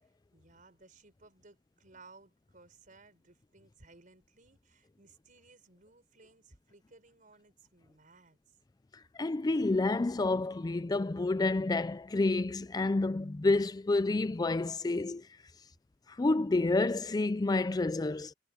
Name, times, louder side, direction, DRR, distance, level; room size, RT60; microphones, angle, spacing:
voice 1, 0.0-8.6, right 3 dB, 45° right, 5.0 m, -60 dB
voice 2, 9.1-15.2 16.2-18.3, left 2 dB, 20° left, 0.4 m, -29 dB
head